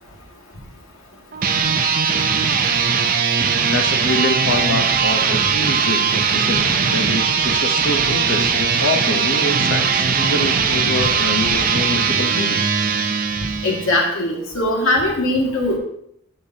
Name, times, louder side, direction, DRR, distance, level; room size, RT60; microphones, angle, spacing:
sound 1, 1.3-14.1, right 6 dB, 40° right, 0.6 m, -19 dB
voice 1, 3.7-12.7, left 2 dB, 55° left, 6 dB, 0.9 m, -25 dB
voice 2, 13.6-15.8, left 1 dB, 75° left, -1 dB, 2.1 m, -20 dB
12.0 x 6.7 x 2.9 m, 0.73 s
head